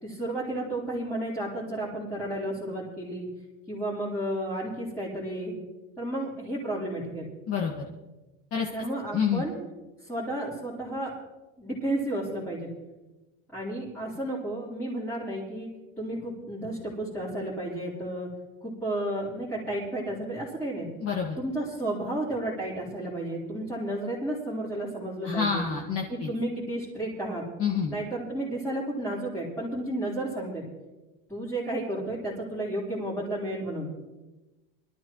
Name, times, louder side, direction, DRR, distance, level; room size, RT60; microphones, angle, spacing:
voice 1, 0.0-3.3 3.7-5.6 6.0-7.3 8.7-9.6 10.0-11.1 11.6-12.7 13.5-15.7 16.0-18.3 18.6-20.9 21.4-25.6 26.1-27.5 27.9-30.7 31.3-33.9, right 1 dB, 5° left, -9 dB, 4.0 m, -32 dB
voice 2, 21.0-21.4 25.2-26.3 27.6-27.9, left 7 dB, 35° left, 0 dB, 1.8 m, -27 dB
23.0 x 13.0 x 3.1 m, 1.1 s
supercardioid pair, 150°, 40 cm